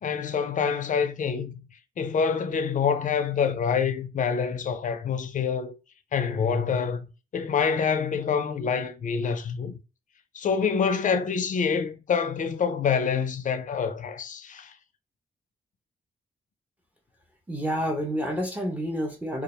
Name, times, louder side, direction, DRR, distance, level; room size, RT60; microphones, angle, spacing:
voice 1, 0.0-1.5 2.0-5.7 6.1-9.8 10.3-14.7, left 6 dB, 50° left, 0.4 m, -26 dB
voice 2, 17.5-19.4, equal, 10° right, 0.5 m, -29 dB
2.4 x 2.1 x 2.8 m
cardioid pair, 105°, 18 cm